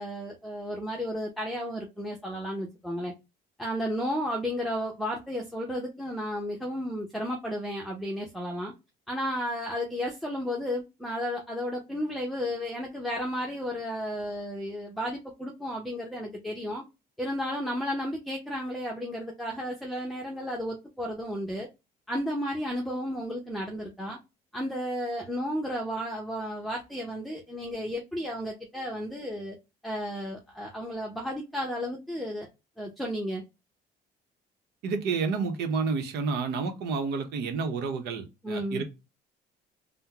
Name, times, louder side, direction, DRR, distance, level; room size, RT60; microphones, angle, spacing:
voice 1, 0.0-3.1 3.6-8.7 9.1-16.8 17.2-21.7 22.1-24.2 24.5-29.6 29.8-32.5 32.8-33.4 38.4-38.8, equal, ahead, 0 dB, 0.7 m, -33 dB
voice 2, 34.8-38.8, right 4 dB, 80° right, 7 dB, 0.9 m, -30 dB
3.6 x 2.1 x 2.8 m, 0.24 s
cardioid pair, 110°, 17 cm